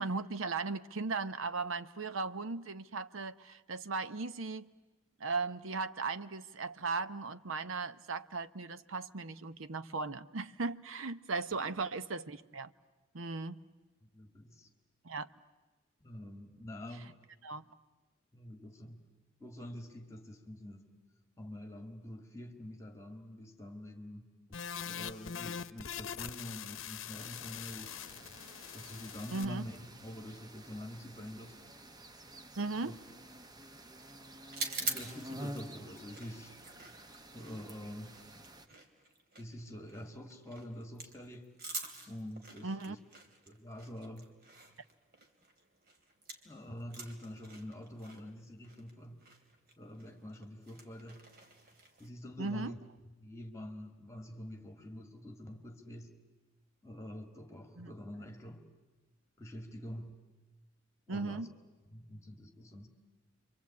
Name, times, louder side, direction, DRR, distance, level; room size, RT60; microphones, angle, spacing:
voice 1, 0.0-4.7 5.2-12.7 13.1-13.6 15.0-15.3 17.4-17.6 29.3-29.6 32.6-32.9 42.6-43.0 52.4-52.7 57.8-57.9 61.1-61.5, right 3 dB, 80° right, 0.9 m, -37 dB
voice 2, 14.0-14.7 16.0-17.1 18.3-19.1 19.4-20.9 21.4-28.0 28.7-29.8 30.0-31.6 32.8-33.0 34.8-36.6 37.3-38.2 39.4-41.5 42.1-43.0 43.5-44.3 46.4-49.2 49.8-51.3 52.0-52.8 53.2-56.2 56.8-58.7 59.4-60.2 61.1-61.5 61.9-62.9, left 1 dB, 15° left, 2.1 m, -46 dB
sound 1, 24.5-29.5, left 8 dB, 75° left, 0.8 m, -43 dB
sound 2, 27.2-38.7, right 1 dB, 20° right, 0.9 m, -50 dB
sound 3, 34.5-46.5 46.8-52.1, right 3 dB, 50° right, 2.9 m, -46 dB
29.0 x 24.5 x 8.5 m
head